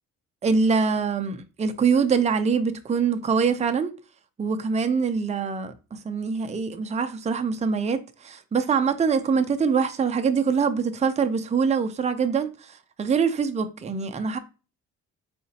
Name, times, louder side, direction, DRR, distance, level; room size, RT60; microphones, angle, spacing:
voice 1, 0.4-3.9 4.4-14.4, right 5 dB, 20° right, 0.5 m, -24 dB
4.2 x 3.8 x 2.8 m
cardioid pair, 90°, 30 cm